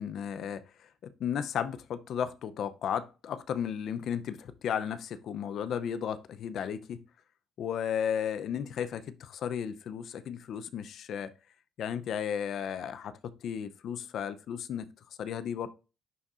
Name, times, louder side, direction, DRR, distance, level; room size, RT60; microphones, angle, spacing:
voice 1, 0.0-7.0 7.6-11.3 11.8-14.9 15.2-15.7, left 8 dB, 65° left, 0.5 m, -34 dB
11.0 x 3.7 x 2.4 m
cardioid pair, 100°, 0 cm